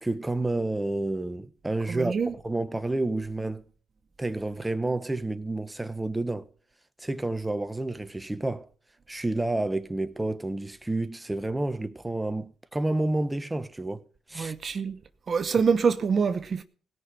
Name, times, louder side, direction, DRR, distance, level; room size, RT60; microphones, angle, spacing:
voice 1, 0.0-2.2 2.4-3.6 4.2-6.5 7.0-8.7 9.1-14.0 14.3-14.5, right 2 dB, 10° right, 1.2 m, -29 dB
voice 2, 1.9-2.3 14.4-15.0 15.3-16.6, right 5 dB, 45° right, 0.9 m, -25 dB
17.0 x 6.0 x 9.7 m
cardioid pair, 90°, 0 cm